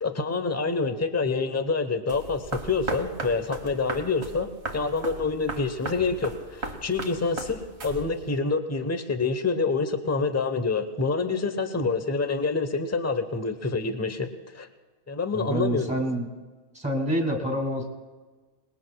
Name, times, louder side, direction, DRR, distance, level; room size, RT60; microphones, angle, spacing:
voice 1, 0.0-14.7 15.1-15.9, left 4 dB, 15° left, 8 dB, 0.8 m, -27 dB
sound 1, 2.1-8.4, right 3 dB, 70° right, 1.7 m, -37 dB
voice 2, 15.3-16.3 16.7-17.8, equal, 5° right, 2 dB, 2.3 m, -27 dB
28.0 x 20.0 x 2.3 m, 1.3 s
omnidirectional pair, 1.1 m